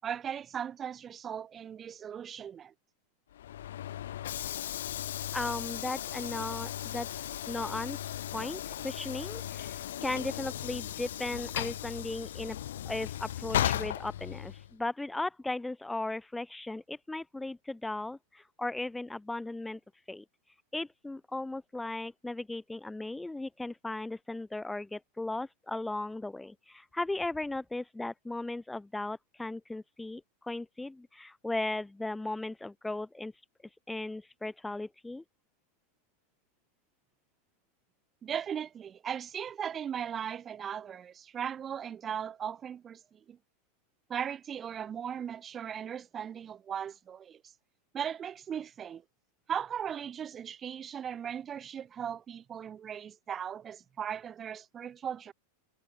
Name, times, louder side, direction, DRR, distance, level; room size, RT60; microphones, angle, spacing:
voice 1, 0.0-2.7 38.2-43.4 44.1-47.4 47.9-49.0 49.5-55.3, right 8 dB, 25° right, 7.6 m, -38 dB
Train / Sliding door, 3.3-14.7, left 11 dB, 60° left, 1.6 m, -36 dB
voice 2, 5.3-8.0 8.3-12.6 12.8-19.8 20.1-20.2 20.7-33.3 33.9-35.2, left 2 dB, 5° left, 3.3 m, -37 dB
figure-of-eight pair, 90°, 0 cm